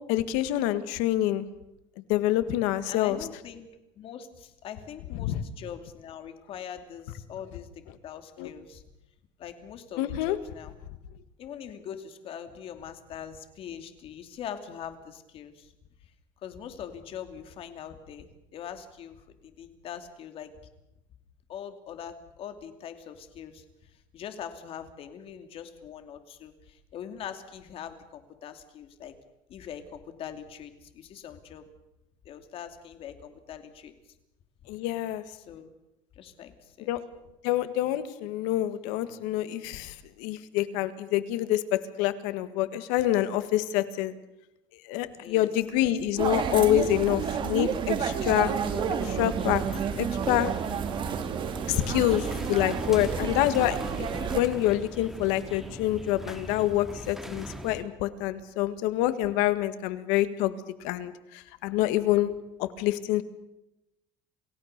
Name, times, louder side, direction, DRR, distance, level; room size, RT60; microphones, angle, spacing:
voice 1, 0.1-1.4 2.1-3.2 5.2-5.4 8.4-8.5 10.0-10.4 34.7-35.2 36.9-37.0 37.4-44.1 44.8-48.5 49.0-49.6 50.0-50.5 51.7-60.5 60.8-62.3 62.6-63.2, left 14 dB, 85° left, 12 dB, 1.7 m, -27 dB
voice 2, 2.9-3.7 3.9-8.8 9.4-10.8 11.4-15.7 16.0-16.1 16.4-20.5 21.5-29.1 29.5-31.7 32.2-33.9 35.3-35.7 36.2-36.9 45.2-45.9, left 8 dB, 45° left, 8 dB, 2.6 m, -42 dB
sound 1, 46.2-54.4, right 7 dB, 40° right, 2.3 m, -30 dB
sound 2, 48.3-57.8, equal, ahead, 2.5 m, -40 dB
28.5 x 16.5 x 6.7 m, 0.93 s
cardioid pair, 145°, 13 cm